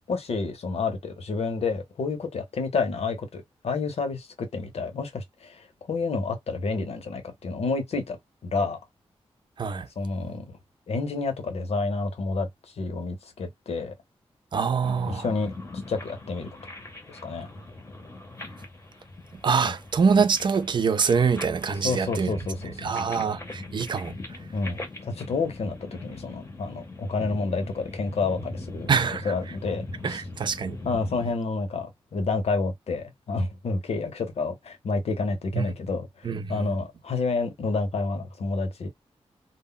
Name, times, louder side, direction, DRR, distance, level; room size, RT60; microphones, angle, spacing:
voice 1, 0.1-8.2 8.4-8.8 10.0-10.6 10.9-12.5 12.8-13.9 15.1-15.5 15.9-16.5 17.1-17.5 19.6-19.8 21.8-23.3 24.5-28.9 29.2-30.2 30.8-38.9, left 4 dB, 75° left, 0.7 m, -29 dB
voice 2, 14.5-15.2 19.4-22.4 22.8-24.1 28.9-29.3 30.0-30.8 35.5-35.6 36.2-36.4, right 5 dB, 45° right, 0.4 m, -24 dB
sound 1, 14.8-31.3, left 2 dB, 25° left, 0.7 m, -40 dB
2.1 x 2.0 x 3.6 m
wide cardioid pair, 145°, 11 cm